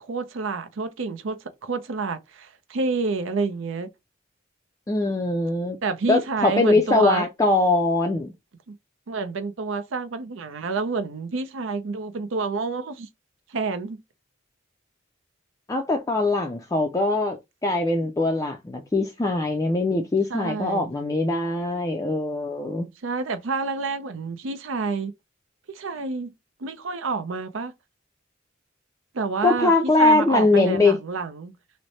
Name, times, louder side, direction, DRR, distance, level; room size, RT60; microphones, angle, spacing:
voice 1, 0.0-3.9 5.8-7.3 8.7-8.8 9.1-13.1 13.5-14.0 20.3-20.9 23.0-25.1 25.7-26.3 26.6-27.7 29.1-31.5, right 4 dB, 80° right, 0.6 m, -28 dB
voice 2, 4.9-5.8 6.1-8.3 15.7-22.9 29.4-31.0, left 2 dB, 15° left, 0.3 m, -22 dB
3.2 x 2.1 x 4.0 m
head